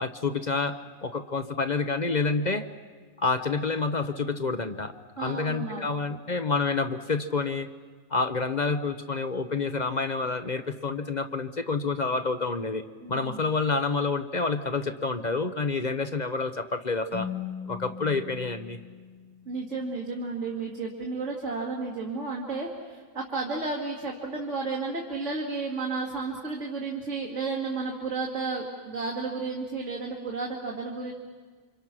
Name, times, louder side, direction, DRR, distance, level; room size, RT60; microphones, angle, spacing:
voice 1, 0.0-2.7 3.2-4.9 5.2-7.7 8.1-12.8 13.1-17.3 17.7-18.8, left 4 dB, 40° left, 9 dB, 0.9 m, -28 dB
voice 2, 5.2-6.0 13.0-13.4 19.5-31.1, right 3 dB, 65° right, -2 dB, 2.6 m, -32 dB
Keyboard (musical), 17.1-19.9, left 8 dB, 15° left, 1.4 m, -39 dB
28.5 x 25.5 x 6.0 m, 1.5 s
omnidirectional pair, 1.4 m